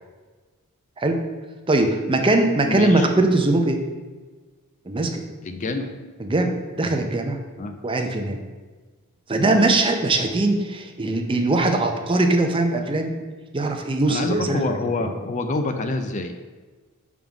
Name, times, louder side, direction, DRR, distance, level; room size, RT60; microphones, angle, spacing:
voice 1, 1.7-3.8 4.9-5.2 6.2-7.4 7.8-8.4 9.3-13.2 13.5-15.2, right 2 dB, 25° right, 4 dB, 0.5 m, -21 dB
voice 2, 2.6-3.1 5.4-5.9 7.6-7.8 14.1-16.4, left 2 dB, 35° left, 7 dB, 0.4 m, -26 dB
5.5 x 3.6 x 5.9 m, 1.3 s
head